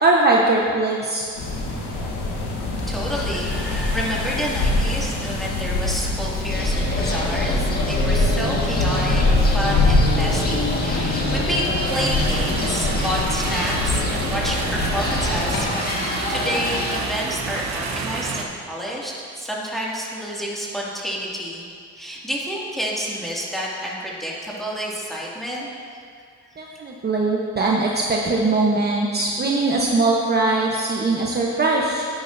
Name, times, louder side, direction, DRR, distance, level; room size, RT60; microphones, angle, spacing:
voice 1, 0.0-1.3 26.6-32.1, right 2 dB, 35° right, -2 dB, 1.0 m, -20 dB
sound 1, 1.4-15.6, left 2 dB, 85° left, 1.7 m, -24 dB
voice 2, 2.9-21.6 22.0-25.7 26.6-26.8, equal, ahead, -5 dB, 2.3 m, -29 dB
sound 2, 6.5-17.0, left 1 dB, 30° left, 1.7 m, -26 dB
sound 3, 11.9-18.4, right 4 dB, 65° right, 1.1 m, -30 dB
12.5 x 9.9 x 2.7 m, 2.1 s
cardioid pair, 90°, 30 cm